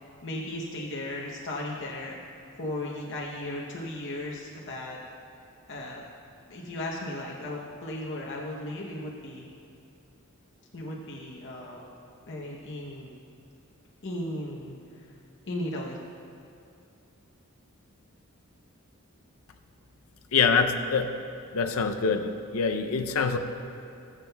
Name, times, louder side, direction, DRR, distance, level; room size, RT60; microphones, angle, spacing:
voice 1, 0.2-2.2 2.6-5.0 5.7-6.0 6.5-9.5 10.7-11.9 12.3-13.1 14.0-15.1 15.5-16.0, left 1 dB, 60° left, -3 dB, 0.9 m, -36 dB
voice 2, 20.3-21.1 21.5-23.4, left 5 dB, 85° left, 6 dB, 0.6 m, -25 dB
20.0 x 7.4 x 2.3 m, 2.6 s
head